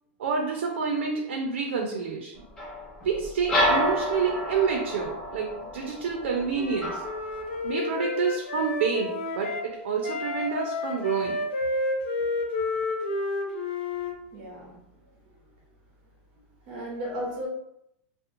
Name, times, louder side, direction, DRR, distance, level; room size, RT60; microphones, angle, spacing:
voice 1, 0.2-2.4 3.0-7.0 7.6-11.4, right 5 dB, 80° right, 2 dB, 0.4 m, -28 dB
sound 1, 2.6-7.7, equal, 10° left, 0.5 m, -29 dB
Wind instrument woodwind instrument, 6.0-9.7 10.0-14.1, left 3 dB, 75° left, 0.5 m, -31 dB
voice 2, 14.3-15.1 16.3-17.5, equal, 35° right, -3 dB, 0.7 m, -36 dB
2.8 x 2.0 x 2.5 m, 0.78 s
supercardioid pair, 180°, 6 cm